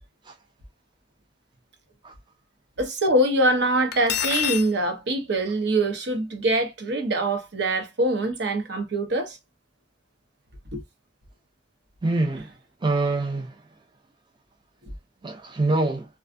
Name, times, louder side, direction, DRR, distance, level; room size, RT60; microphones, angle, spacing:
voice 1, 2.8-9.4 10.7-10.8 14.8-14.9, right 1 dB, 65° right, 0.8 m, -24 dB
Cutlery silverware, 3.9-4.7, left 12 dB, 60° left, 0.3 m, -26 dB
voice 2, 12.0-12.5 12.8-13.5 15.2-16.1, right 2 dB, 25° right, 0.5 m, -25 dB
2.4 x 2.3 x 2.5 m
head